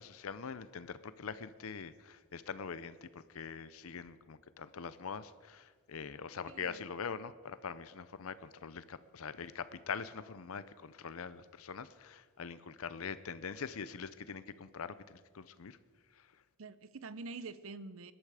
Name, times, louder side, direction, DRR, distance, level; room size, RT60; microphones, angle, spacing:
voice 1, 0.0-15.8 16.1-16.3, left 6 dB, 80° left, 0.6 m, -43 dB
voice 2, 6.5-6.8 16.6-18.1, right 3 dB, 70° right, 0.7 m, -46 dB
18.5 x 12.0 x 4.9 m
head